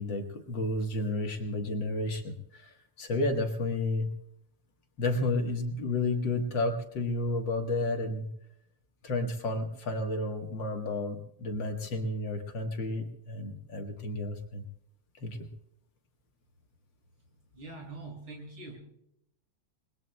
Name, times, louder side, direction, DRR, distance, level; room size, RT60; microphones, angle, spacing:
voice 1, 0.0-4.1 5.0-8.3 9.0-14.6 15.2-15.5, left 2 dB, 60° left, 3 dB, 2.1 m, -31 dB
voice 2, 17.5-18.8, right 2 dB, 70° right, 0 dB, 6.8 m, -43 dB
29.5 x 20.0 x 2.2 m, 0.75 s
omnidirectional pair, 2.4 m